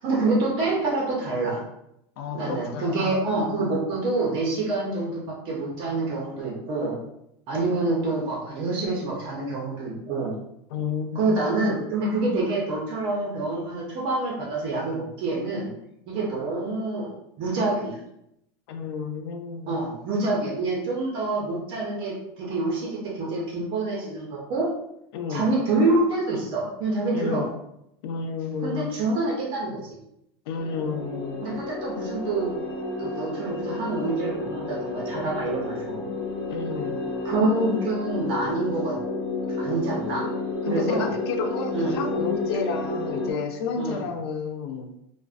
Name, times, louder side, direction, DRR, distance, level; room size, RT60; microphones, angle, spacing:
voice 1, 0.0-1.6 2.3-5.2 5.5-7.0 7.5-10.3 11.1-15.7 16.1-17.1 17.4-18.0 19.7-24.7 25.3-27.4 28.6-29.8 31.4-32.6 33.0-36.1 37.2-38.9 39.6-40.2 40.6-41.1 41.7-42.0 43.8-44.1, right 2 dB, 45° right, -3 dB, 0.6 m, -26 dB
voice 2, 2.2-3.2 10.7-11.4 18.7-19.8 25.1-25.5 27.1-27.5 28.0-28.9 30.5-31.5 36.5-37.0 40.6-44.9, left 5 dB, 85° left, 5 dB, 0.4 m, -31 dB
sound 1, 30.6-43.3, left 2 dB, 30° left, 0.4 m, -31 dB
2.4 x 2.1 x 2.4 m, 0.80 s
supercardioid pair, 160°, 13 cm